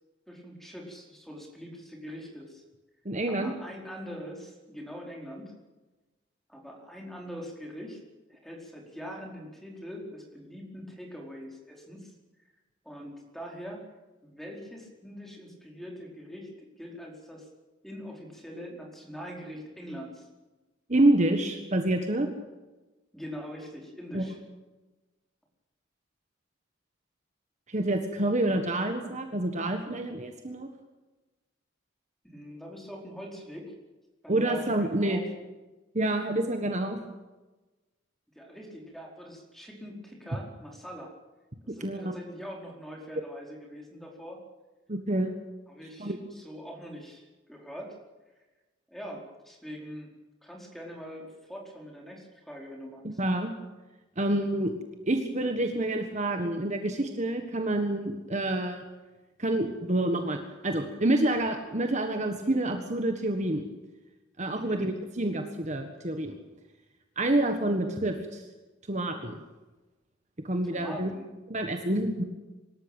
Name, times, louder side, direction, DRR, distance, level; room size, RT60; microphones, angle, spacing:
voice 1, 0.3-2.6 3.3-5.5 6.5-8.0 8.3-12.1 12.8-13.8 14.2-16.5 16.8-17.5 17.8-20.3 23.1-24.4 32.2-33.7 34.2-35.2 38.3-41.1 41.6-44.4 45.7-48.0 48.9-50.1 50.4-53.1 64.5-64.8 70.6-71.3, equal, ahead, 0 dB, 4.8 m, -43 dB
voice 2, 3.0-3.5 20.9-22.3 24.1-24.2 27.7-30.7 34.3-35.2 35.9-37.0 41.7-42.2 44.9-45.3 46.0-46.2 53.0-53.5 54.2-54.7 55.1-58.8 59.4-63.6 64.4-66.4 67.2-68.4 68.9-69.4 70.4-71.1 71.5-72.2, right 1 dB, 35° right, 5 dB, 1.6 m, -28 dB
24.5 x 13.5 x 9.0 m, 1.2 s
head